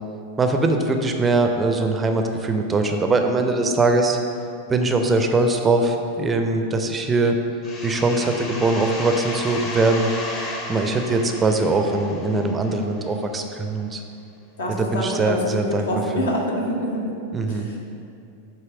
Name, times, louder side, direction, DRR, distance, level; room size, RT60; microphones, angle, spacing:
voice 1, 0.4-4.2 4.7-7.4 7.8-14.0 14.8-15.9 16.1-16.2 17.3-17.7, right 2 dB, 15° right, 4 dB, 0.5 m, -21 dB
sound 1, 7.6-13.2, left 2 dB, 35° left, 1.0 m, -34 dB
voice 2, 14.6-17.2 17.5-17.8, equal, 65° left, -1 dB, 1.1 m, -26 dB
7.6 x 3.0 x 5.8 m, 2.6 s
figure-of-eight pair, 90°, 0 cm